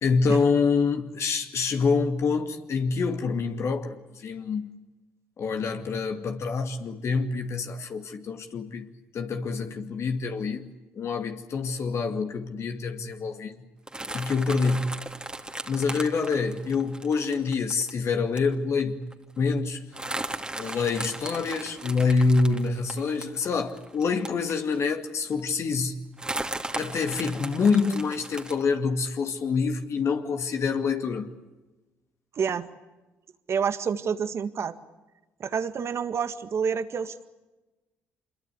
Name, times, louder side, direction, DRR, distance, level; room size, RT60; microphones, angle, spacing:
voice 1, 0.0-4.7 5.4-8.9 9.1-10.7 11.0-13.5 14.1-15.0 15.7-19.0 19.4-19.9 20.6-26.0 26.7-31.3, left 4 dB, 55° left, 2.3 m, -26 dB
sound 1, 13.9-17.9 18.4-18.5 18.8-18.9 19.1-19.4 19.9-24.9 25.4-25.5 26.2-28.6, right 2 dB, 15° right, 2.7 m, -36 dB
voice 2, 32.4-32.7 33.5-34.8 35.4-37.3, right 6 dB, 55° right, 1.9 m, -28 dB
25.5 x 22.0 x 8.5 m
hypercardioid pair, 55°, 6 cm